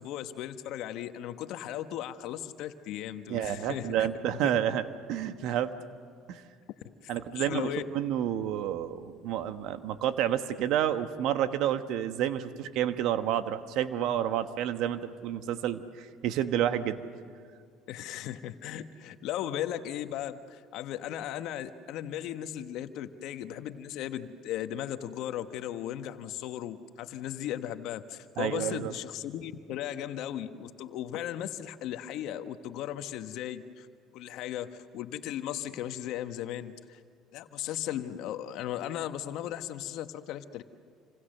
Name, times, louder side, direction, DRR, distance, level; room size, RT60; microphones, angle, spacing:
voice 1, 0.0-4.4 7.3-7.8 17.9-33.9 34.1-37.0 37.3-40.6, left 11 dB, 70° left, 9 dB, 1.2 m, -36 dB
voice 2, 3.3-4.8 5.1-5.7 6.3-6.4 7.1-7.7 7.9-17.0 28.4-28.9, right 11 dB, 70° right, 10 dB, 1.2 m, -29 dB
28.5 x 26.0 x 6.7 m, 2.1 s
supercardioid pair, 80°, 0 cm